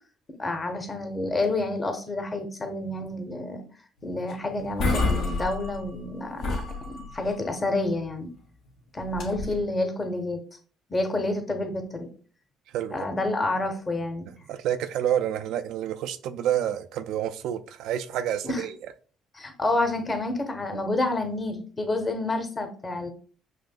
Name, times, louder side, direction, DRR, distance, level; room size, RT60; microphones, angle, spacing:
voice 1, 0.4-3.6 4.0-8.3 8.9-10.4 10.9-12.1 12.9-14.3 18.4-18.6 19.3-23.1, left 2 dB, 30° left, 1.0 m, -29 dB
sound 1, 4.3-4.4 4.6-6.1 6.4-7.4 9.0-9.6, left 3 dB, 70° left, 1.2 m, -28 dB
voice 2, 12.7-13.1 14.5-18.8, right 10 dB, 70° right, 0.3 m, -28 dB
6.2 x 2.7 x 2.2 m
supercardioid pair, 65°, 0 cm